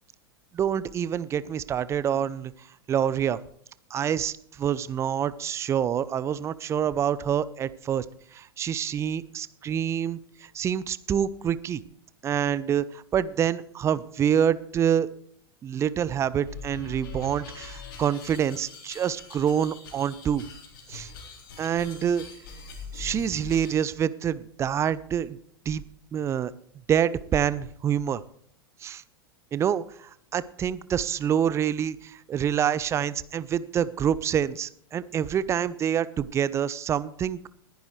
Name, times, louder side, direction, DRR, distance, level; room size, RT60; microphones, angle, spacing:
voice 1, 0.5-2.5 2.9-3.4 3.9-8.0 8.3-11.8 12.2-15.1 15.6-20.4 20.9-21.1 21.6-22.2 22.9-25.4 25.7-25.8 26.1-26.5 26.9-28.2 28.8-29.0 29.5-37.5, right 9 dB, 20° right, 18 dB, 0.6 m, -26 dB
sound 1, 16.3-23.8, left 4 dB, 55° left, 3.6 m, -42 dB
20.5 x 10.5 x 3.2 m, 0.63 s
figure-of-eight pair, 90°, 13 cm